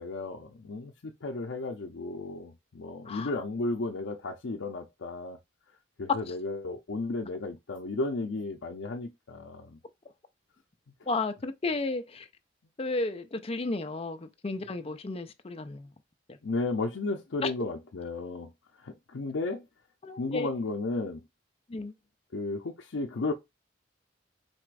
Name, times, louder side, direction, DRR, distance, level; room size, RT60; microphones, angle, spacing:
voice 1, 0.0-5.4 6.0-9.8 16.4-18.5 18.8-19.6 20.2-21.2 22.3-23.3, left 3 dB, 80° left, 0.6 m, -34 dB
voice 2, 11.1-12.3 12.8-15.9 17.4-17.5 20.0-20.6 21.7-21.9, left 3 dB, 30° left, 0.5 m, -33 dB
4.2 x 2.5 x 4.6 m
head